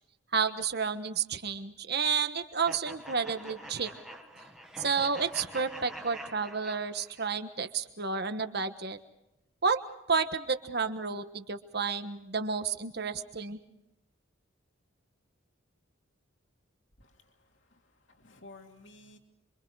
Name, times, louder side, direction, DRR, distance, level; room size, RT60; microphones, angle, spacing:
voice 1, 0.3-3.9 4.8-9.0 9.6-9.8 10.1-13.6, right 5 dB, 50° right, 9 dB, 1.3 m, -31 dB
sound 1, 2.6-7.3, right 1 dB, 5° right, 1.7 m, -46 dB
voice 2, 17.0-19.2, left 2 dB, 65° left, 3 dB, 2.7 m, -55 dB
27.0 x 24.5 x 4.8 m, 0.86 s
head